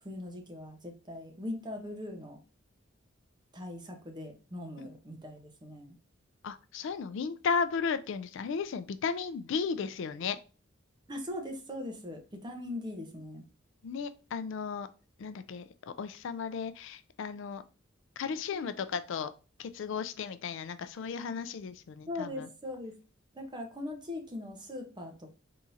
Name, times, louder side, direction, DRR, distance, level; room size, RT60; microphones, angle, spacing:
voice 1, 0.0-2.4 3.5-6.0 11.1-13.5 22.1-22.9 23.3-25.3, left 1 dB, 20° right, 3 dB, 0.9 m, -40 dB
voice 2, 6.4-10.4 13.8-14.9 15.2-17.6 18.2-19.3 19.6-22.5, left 5 dB, 65° left, 12 dB, 0.4 m, -35 dB
4.3 x 3.6 x 2.7 m, 0.33 s
head